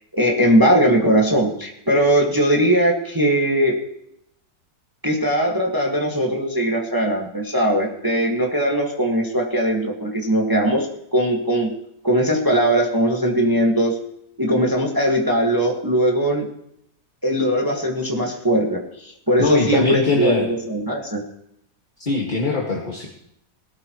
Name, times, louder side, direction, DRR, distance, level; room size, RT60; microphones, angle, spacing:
voice 1, 0.1-3.8 5.0-10.9 11.1-11.7 12.0-14.0 14.4-16.5 17.2-21.2, right 1 dB, 15° right, 0 dB, 1.7 m, -20 dB
voice 2, 19.4-20.5 22.0-23.1, left 3 dB, 30° left, -2 dB, 2.0 m, -22 dB
19.0 x 13.0 x 3.1 m, 0.76 s
omnidirectional pair, 1.7 m